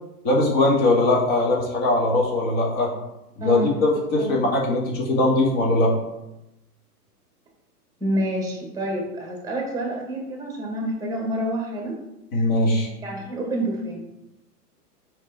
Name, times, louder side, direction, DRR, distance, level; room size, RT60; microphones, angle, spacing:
voice 1, 0.2-2.9 3.4-5.9 12.3-12.9, left 2 dB, 40° left, -3 dB, 2.6 m, -20 dB
voice 2, 3.4-3.7 4.2-4.4 8.0-12.0 13.0-14.0, right 1 dB, 5° right, 1 dB, 2.0 m, -28 dB
7.3 x 4.5 x 4.5 m, 0.92 s
hypercardioid pair, 130°, 47 cm